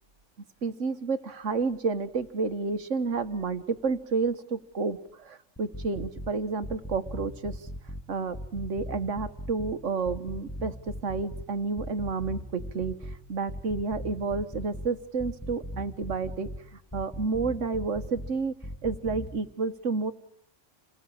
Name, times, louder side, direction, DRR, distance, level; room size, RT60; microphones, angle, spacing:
voice 1, 0.6-7.7 8.1-13.0 13.3-16.5 16.9-18.5 18.8-20.1, right 4 dB, 75° right, 11 dB, 1.7 m, -30 dB
sound 1, 5.6-6.3 6.6-8.0 8.3-9.7 10.0-11.4 11.8-13.2 13.5-14.9 15.2-16.6 16.9-18.3 18.6-19.3, left 1 dB, 10° left, 2.5 m, -38 dB
28.0 x 20.5 x 8.7 m, 0.70 s
omnidirectional pair, 1.3 m